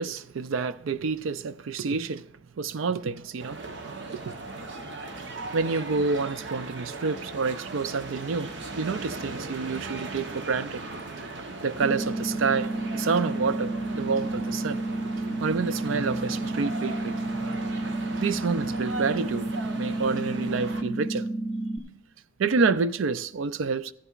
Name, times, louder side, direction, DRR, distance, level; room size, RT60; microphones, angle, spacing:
voice 1, 0.0-2.2 2.6-3.7 4.1-4.3 5.5-8.5 8.8-10.8 11.6-14.8 15.4-17.1 18.2-19.5 19.8-21.3 22.4-23.9, right 4 dB, 80° right, 0.4 m, -28 dB
sound 1, 3.4-20.8, right 2 dB, 60° right, 0.9 m, -38 dB
sound 2, 11.8-21.8, right 2 dB, 25° right, 0.9 m, -31 dB
15.0 x 11.0 x 2.4 m
head